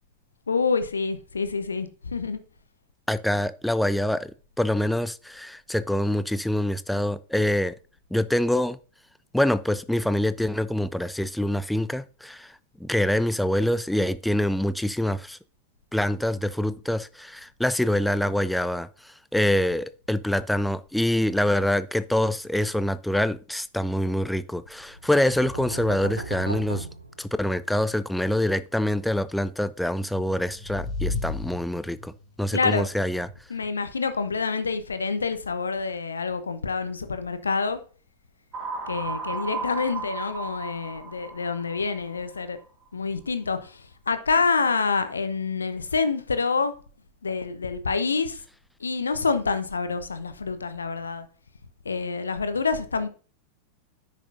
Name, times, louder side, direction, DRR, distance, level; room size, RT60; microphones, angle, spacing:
voice 1, 0.5-2.4 32.5-32.9 33.5-37.8 38.9-42.6 42.9-46.7 47.2-48.4 48.8-51.3 51.8-53.1, left 4 dB, 75° left, 0.9 m, -27 dB
voice 2, 3.1-4.3 4.6-7.7 8.1-8.8 9.3-12.5 12.8-15.4 15.9-18.9 19.3-26.9 27.2-32.1 32.4-33.3, left 1 dB, ahead, 0.5 m, -25 dB
sound 1, 24.9-27.8, right 1 dB, 85° right, 0.9 m, -36 dB
sound 2, 30.0-32.3, left 3 dB, 20° left, 2.5 m, -33 dB
sound 3, 38.5-42.4, right 4 dB, 25° right, 2.4 m, -35 dB
10.0 x 6.5 x 2.6 m
figure-of-eight pair, 90°, 0 cm